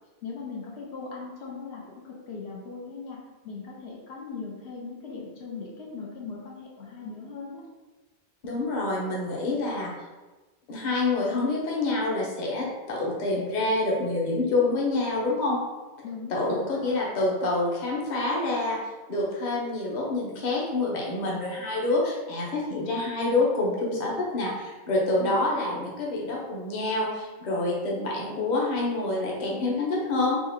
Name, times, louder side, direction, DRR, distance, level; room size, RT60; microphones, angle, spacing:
voice 1, 0.2-7.6 16.0-16.7 25.2-25.3, left 4 dB, 85° left, -2 dB, 1.0 m, -39 dB
voice 2, 8.4-9.9 10.7-15.6 16.3-18.8 19.1-30.4, left 2 dB, 50° left, -3 dB, 0.8 m, -27 dB
4.1 x 2.4 x 2.7 m, 1.2 s
omnidirectional pair, 1.1 m